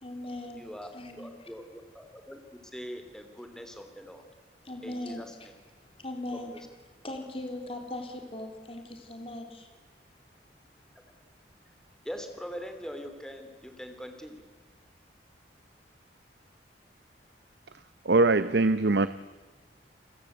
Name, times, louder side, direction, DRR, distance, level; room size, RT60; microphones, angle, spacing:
voice 1, 0.0-1.5 4.6-5.5 5.8-6.7 7.0-9.7, left 1 dB, 30° left, 4 dB, 3.6 m, -39 dB
voice 2, 0.5-0.9 1.2-4.3 4.8-5.5 6.3-6.6 12.0-14.4, equal, 5° left, 6 dB, 3.1 m, -42 dB
voice 3, 18.0-19.1, right 3 dB, 65° right, 13 dB, 0.8 m, -22 dB
30.0 x 21.5 x 8.1 m, 1.4 s
head